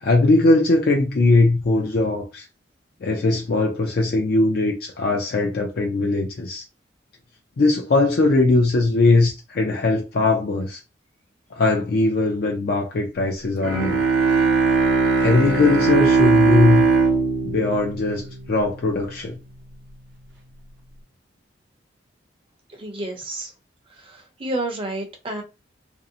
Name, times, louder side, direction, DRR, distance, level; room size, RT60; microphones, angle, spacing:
voice 1, 0.0-2.4 3.0-6.6 7.6-10.8 11.5-14.0 15.2-16.9 17.4-19.4, left 2 dB, 55° left, 0.4 m, -20 dB
Bowed string instrument, 13.6-18.9, right 4 dB, 70° right, 0.7 m, -19 dB
voice 2, 22.7-23.5 24.0-25.4, right 2 dB, 30° right, 0.6 m, -30 dB
2.6 x 2.0 x 2.6 m
head